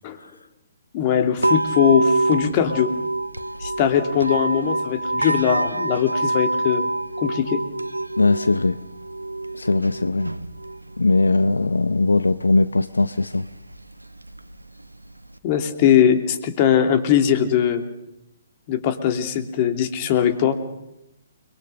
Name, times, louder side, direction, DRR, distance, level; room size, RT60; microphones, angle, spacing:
voice 1, 0.9-2.9 3.6-6.9 7.2-7.6 15.4-17.8 18.7-20.6, left 9 dB, 35° left, 8 dB, 3.0 m, -20 dB
sound 1, 1.4-15.4, right 2 dB, 85° right, 1.2 m, -27 dB
voice 2, 8.2-8.8 9.5-10.3 11.0-13.5, left 3 dB, 75° left, 14 dB, 0.8 m, -20 dB
29.5 x 23.0 x 6.6 m, 0.89 s
figure-of-eight pair, 130°, 0 cm